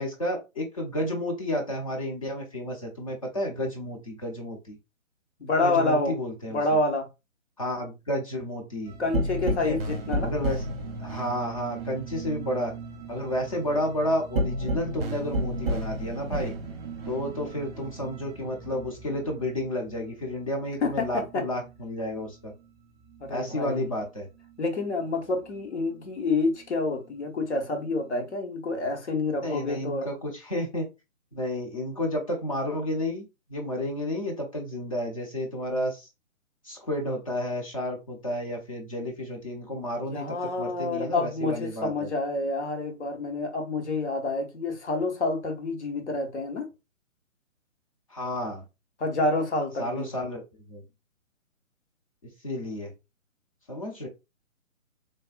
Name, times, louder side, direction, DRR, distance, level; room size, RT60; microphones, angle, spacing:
voice 1, 0.0-4.8 5.6-6.6 7.6-8.9 9.6-9.8 10.2-10.6 11.0-12.7 13.1-16.5 17.1-22.5 23.3-24.3 29.4-30.9 31.3-33.2 33.5-36.1 36.6-42.1 48.1-48.6 49.8-50.4 50.7-50.8 52.4-52.9 53.7-54.1, left 1 dB, 25° left, 0.6 m, -31 dB
voice 2, 5.4-6.2 6.5-7.1 9.0-10.3 20.8-21.5 23.2-24.0 24.6-30.1 40.1-46.7 49.0-50.1, left 2 dB, 55° left, 0.9 m, -28 dB
sound 1, 8.9-21.8 22.1-24.1 24.4-26.1 26.5-28.3, right 1 dB, 45° right, 0.6 m, -34 dB
3.4 x 2.1 x 2.4 m
figure-of-eight pair, 140°, 41 cm